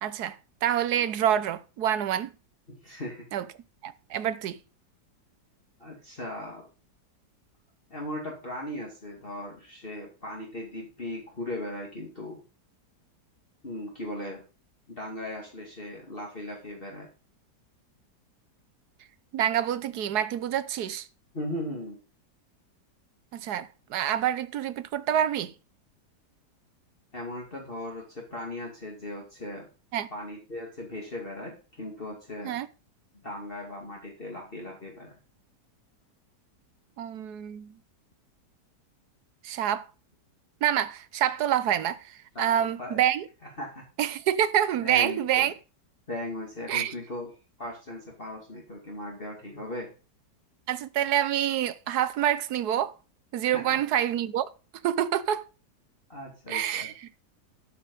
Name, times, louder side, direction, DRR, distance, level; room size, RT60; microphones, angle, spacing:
voice 1, 0.0-2.3 3.3-3.4 3.8-4.6 19.3-21.1 23.3-25.5 29.9-30.1 32.4-32.7 37.0-37.7 39.4-39.9 40.6-43.3 44.0-45.5 46.7-46.9 50.7-52.9 53.3-54.5 54.8-55.4 56.5-56.9, right 10 dB, 70° right, 1.3 m, -27 dB
voice 2, 2.7-3.3 5.8-6.6 7.9-12.4 13.6-14.4 14.9-17.1 21.3-22.0 27.1-29.7 30.1-32.6 33.2-35.2 42.3-43.0 43.6-43.9 44.8-45.5 46.1-47.3 47.6-49.9 53.5-53.8 56.1-56.9, left 1 dB, 30° left, 2.5 m, -38 dB
12.5 x 6.6 x 5.3 m
omnidirectional pair, 1.8 m